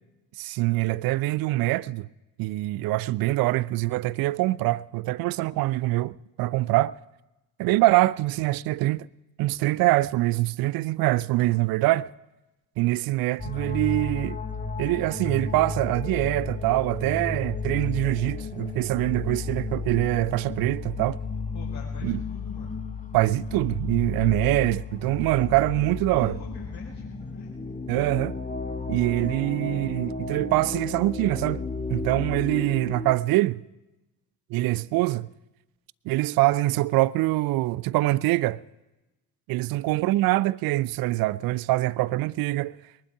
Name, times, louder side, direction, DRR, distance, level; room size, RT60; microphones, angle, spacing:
voice 1, 0.4-2.1 2.4-6.9 7.6-9.1 9.4-12.1 12.8-14.4 14.8-21.2 22.0-22.2 23.1-26.4 27.9-28.4 28.9-33.6 34.5-35.3 36.1-38.6 39.5-42.7, right 18 dB, 50° right, 0.6 m, -24 dB
sound 1, 13.4-33.1, left 3 dB, 15° left, 1.4 m, -33 dB
voice 2, 21.5-22.8 26.1-27.5 29.3-29.9, left 5 dB, 55° left, 4.7 m, -43 dB
22.5 x 11.5 x 3.6 m
figure-of-eight pair, 50°, 48 cm